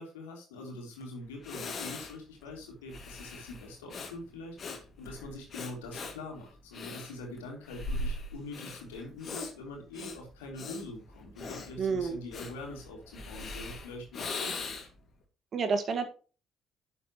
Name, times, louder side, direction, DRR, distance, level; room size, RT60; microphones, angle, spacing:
voice 1, 0.0-14.8, left 2 dB, 80° left, 1 dB, 2.9 m, -44 dB
Breathing, 1.0-1.1 1.4-15.1, left 3 dB, 50° left, 2.3 m, -40 dB
voice 2, 11.8-12.2 15.5-16.1, right 5 dB, 50° right, 7 dB, 2.0 m, -29 dB
11.5 x 7.0 x 3.1 m, 0.36 s
hypercardioid pair, 50°, 0 cm